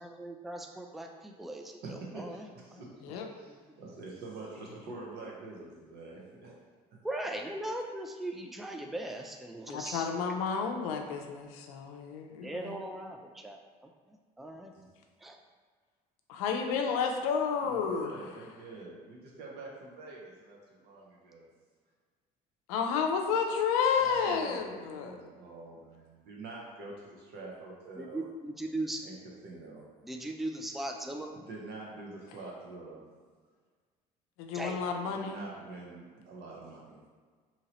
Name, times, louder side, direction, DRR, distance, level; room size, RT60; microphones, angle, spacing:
voice 1, 0.0-1.8 2.1-2.8 3.2-3.6 7.0-10.1 12.4-13.6 14.1-14.7 15.2-15.4 28.0-29.0 30.0-31.4 34.5-34.9, right 1 dB, ahead, 3 dB, 0.3 m, -39 dB
voice 2, 1.8-3.0 3.3-6.6 14.7-14.9 17.6-21.5 24.0-28.2 29.0-29.2 29.4-29.9 31.3-33.0 35.0-37.0, right 3 dB, 65° right, -3 dB, 0.9 m, -46 dB
voice 3, 9.7-12.8 16.3-18.3 22.7-25.2 34.4-35.4, left 6 dB, 85° left, 3 dB, 0.4 m, -31 dB
2.8 x 2.8 x 2.9 m, 1.5 s
supercardioid pair, 75°, 18 cm